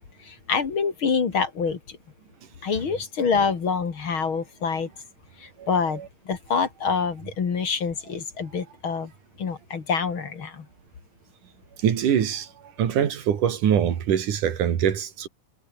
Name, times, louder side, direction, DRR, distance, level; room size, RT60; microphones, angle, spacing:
voice 1, 0.2-2.0 2.6-4.9 5.4-9.1 9.4-10.7, left 5 dB, 45° left, 2.8 m, -26 dB
voice 2, 11.8-12.5 12.8-15.3, right 9 dB, 80° right, 3.7 m, -23 dB
omnidirectional pair, 3.6 m